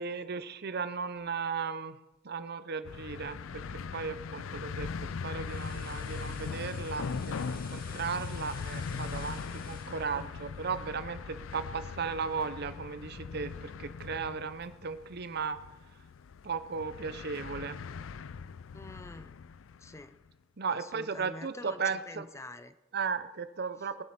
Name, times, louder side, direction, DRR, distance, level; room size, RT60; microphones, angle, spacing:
voice 1, 0.0-2.0 2.2-15.6 16.4-17.8 20.6-22.3 22.9-24.0, right 5 dB, 55° right, 12 dB, 0.7 m, -36 dB
sound 1, 2.8-20.1, left 5 dB, 85° left, 0.4 m, -40 dB
sound 2, 5.1-11.2 11.6-11.8, left 3 dB, 50° left, 2.1 m, -51 dB
voice 2, 18.7-19.3 19.8-20.1 20.7-22.7, left 2 dB, 15° left, 11 dB, 0.6 m, -46 dB
19.5 x 7.6 x 5.8 m, 0.99 s
head